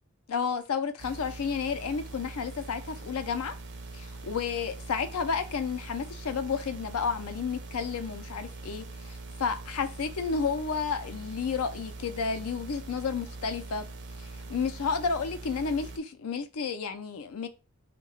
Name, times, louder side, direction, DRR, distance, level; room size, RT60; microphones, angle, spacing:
voice 1, 0.3-3.5 3.9-13.8 14.5-17.5, left 5 dB, 90° left, 0.5 m, -31 dB
sound 1, 1.0-16.0, right 2 dB, 55° right, 0.5 m, -43 dB
2.8 x 2.2 x 4.0 m
head